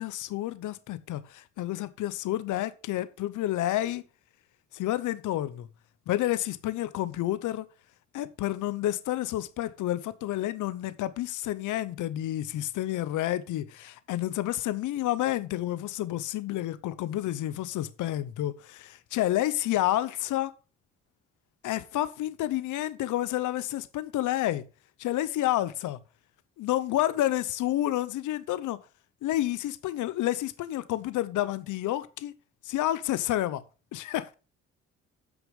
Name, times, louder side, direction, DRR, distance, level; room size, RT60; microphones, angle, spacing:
voice 1, 0.0-4.0 4.7-5.7 6.1-7.7 8.1-20.5 21.6-24.6 25.0-26.0 26.6-28.8 29.2-32.3 32.6-33.6 33.9-34.3, left 14 dB, 80° left, 0.8 m, -29 dB
9.1 x 6.1 x 5.3 m
cardioid pair, 90°, 30 cm